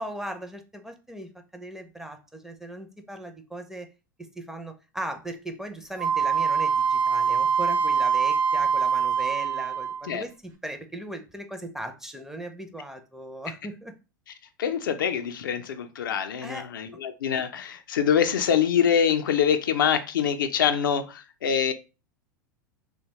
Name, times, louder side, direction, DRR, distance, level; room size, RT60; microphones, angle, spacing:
voice 1, 0.0-3.9 4.2-13.9 16.4-16.7, right 1 dB, 5° right, 0.4 m, -38 dB
Wind instrument woodwind instrument, 6.0-10.1, right 6 dB, 70° right, 0.9 m, -24 dB
voice 2, 14.6-21.7, left 8 dB, 75° left, 0.4 m, -25 dB
2.9 x 2.1 x 2.8 m
hypercardioid pair, 90°, 11 cm